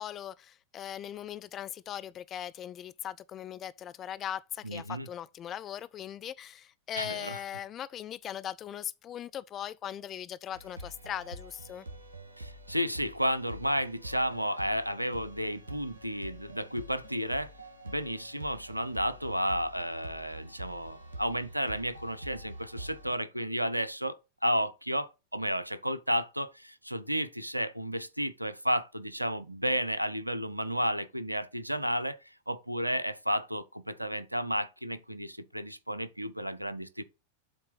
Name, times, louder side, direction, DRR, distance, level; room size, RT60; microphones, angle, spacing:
voice 1, 0.0-11.9, left 10 dB, 30° left, 0.4 m, -39 dB
voice 2, 4.6-5.1 6.9-7.4 12.4-17.5 17.8-24.2 24.4-32.2 32.5-37.0, equal, 90° right, 0.6 m, -32 dB
sound 1, 10.5-23.1, right 1 dB, 70° right, 1.9 m, -46 dB
7.6 x 3.2 x 5.4 m
figure-of-eight pair, 90°, 0 cm